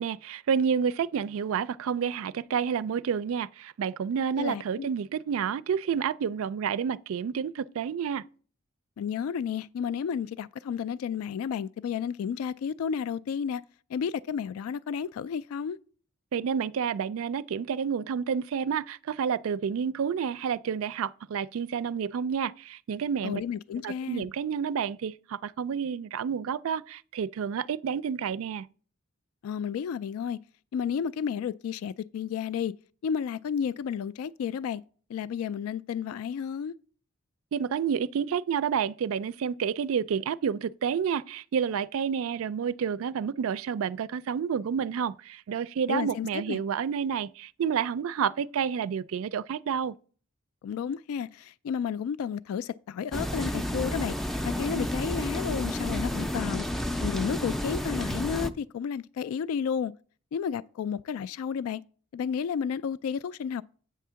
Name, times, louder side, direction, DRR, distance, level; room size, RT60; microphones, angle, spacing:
voice 1, 0.0-8.2 16.3-23.4 23.8-28.7 37.5-49.9, right 7 dB, 70° right, 0.3 m, -29 dB
voice 2, 4.4-4.9 9.0-13.6 13.9-15.8 23.2-24.3 29.4-30.4 30.7-32.7 33.0-34.8 35.1-36.7 45.9-46.6 50.6-54.2 54.4-56.7 57.0-59.9 60.3-61.8 62.1-63.6, left 7 dB, 80° left, 0.3 m, -32 dB
sound 1, 53.1-58.5, left 1 dB, ahead, 0.4 m, -31 dB
8.4 x 3.6 x 6.8 m
head